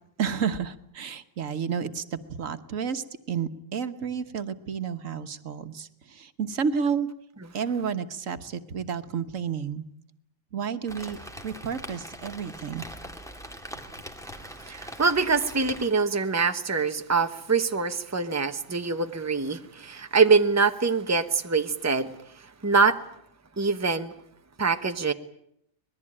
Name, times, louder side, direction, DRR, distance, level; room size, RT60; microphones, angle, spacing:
voice 1, 0.2-7.1 7.5-9.8 10.5-12.8, right 6 dB, 80° right, 9 dB, 1.6 m, -31 dB
Rain, 10.9-15.9, equal, ahead, 2.4 m, -42 dB
voice 2, 14.6-23.0 23.6-24.1 24.6-25.1, right 4 dB, 15° right, 8 dB, 1.0 m, -24 dB
26.0 x 20.5 x 8.8 m, 0.73 s
omnidirectional pair, 1.3 m